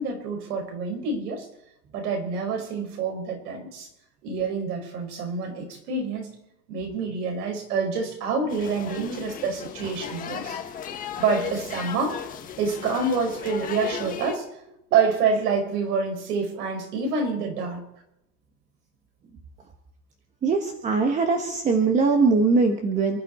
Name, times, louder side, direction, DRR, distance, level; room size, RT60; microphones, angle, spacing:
voice 1, 0.0-1.4 1.9-3.9 4.2-6.3 6.7-10.6 11.2-12.2 12.6-14.4 14.9-17.8, right 4 dB, 70° right, 3 dB, 6.0 m, -27 dB
sound 1, 8.5-14.4, left 8 dB, 15° left, 1.5 m, -36 dB
voice 2, 20.4-23.2, right 4 dB, 15° right, 4 dB, 1.1 m, -21 dB
28.5 x 11.5 x 4.3 m, 0.85 s
supercardioid pair, 165°, 48 cm